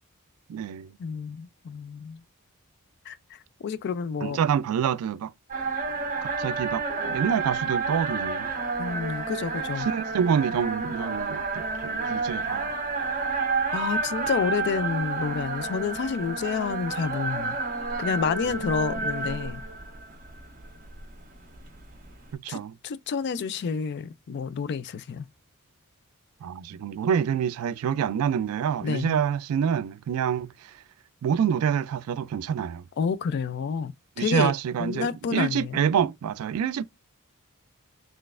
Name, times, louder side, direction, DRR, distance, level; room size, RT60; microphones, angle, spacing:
voice 1, 0.5-0.9 4.2-5.3 6.2-8.6 9.8-12.8 22.3-22.7 26.4-30.7 31.2-32.8 34.2-36.8, right 8 dB, 70° right, 0.3 m, -27 dB
voice 2, 1.0-2.2 3.1-4.4 8.8-9.9 13.7-17.6 18.0-19.6 22.5-25.3 28.8-29.2 33.0-34.5 34.8-35.8, left 6 dB, 50° left, 0.3 m, -29 dB
sound 1, 5.5-22.3, right 4 dB, 40° right, 1.1 m, -30 dB
4.0 x 3.2 x 2.4 m
head